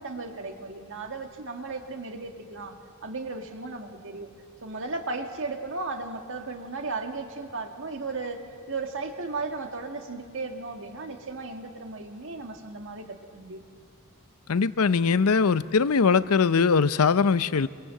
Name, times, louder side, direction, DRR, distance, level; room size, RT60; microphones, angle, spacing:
voice 1, 0.0-2.7 3.0-4.3 4.6-8.4 8.7-13.6, right 3 dB, 60° right, 4 dB, 1.9 m, -35 dB
voice 2, 14.5-17.7, left 5 dB, 75° left, 15 dB, 0.6 m, -21 dB
24.0 x 23.5 x 7.6 m, 2.4 s
head